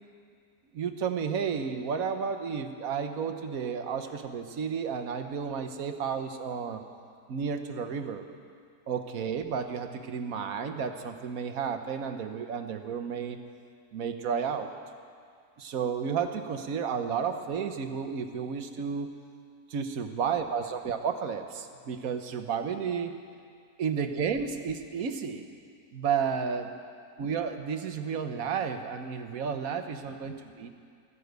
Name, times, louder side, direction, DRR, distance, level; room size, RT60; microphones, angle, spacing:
voice 1, 0.7-6.8 7.3-8.3 8.9-13.4 13.9-14.7 15.6-19.1 19.7-23.1 23.8-25.5 25.9-26.7 27.2-30.7, right 6 dB, 65° right, 7 dB, 1.3 m, -32 dB
14.0 x 12.5 x 8.1 m, 2.2 s
omnidirectional pair, 1.7 m